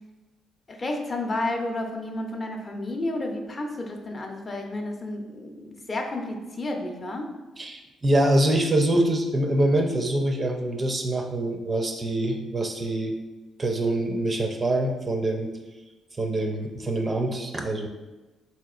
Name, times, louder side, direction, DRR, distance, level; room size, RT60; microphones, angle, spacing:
voice 1, 0.7-7.3, left 2 dB, 30° left, 2 dB, 0.5 m, -31 dB
voice 2, 7.6-13.2 13.6-15.5 16.2-17.9, right 1 dB, 30° right, 3 dB, 0.4 m, -25 dB
4.1 x 2.8 x 2.4 m, 1.1 s
cardioid pair, 90°, 0 cm